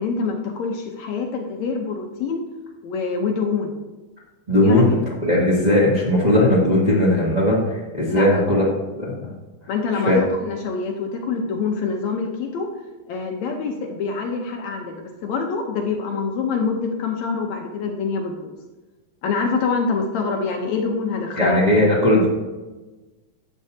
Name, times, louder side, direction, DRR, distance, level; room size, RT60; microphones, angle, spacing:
voice 1, 0.0-2.4 2.8-3.8 4.6-4.8 8.1-8.3 9.7-12.7 13.1-18.5 19.2-21.8, left 5 dB, 70° left, 2 dB, 1.9 m, -25 dB
voice 2, 4.5-8.6 9.0-9.3 10.0-10.2 21.4-22.3, left 1 dB, 20° right, -5 dB, 1.4 m, -18 dB
11.5 x 8.4 x 2.8 m, 1.2 s
omnidirectional pair, 3.6 m